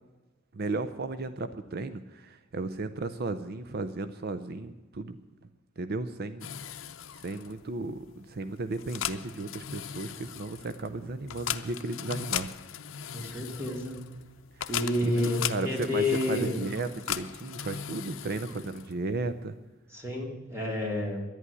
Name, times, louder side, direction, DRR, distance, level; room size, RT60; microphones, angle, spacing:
voice 1, 0.5-5.2 5.8-6.5 7.1-12.5 14.5-14.7 15.0-19.6, right 3 dB, 50° right, 11 dB, 0.6 m, -35 dB
sound 1, 6.4-19.1, left 10 dB, 90° left, 0.6 m, -38 dB
voice 2, 13.1-13.9 14.7-16.6 19.9-21.2, left 2 dB, 15° right, -1 dB, 3.0 m, -29 dB
11.0 x 10.5 x 9.8 m, 1.2 s
head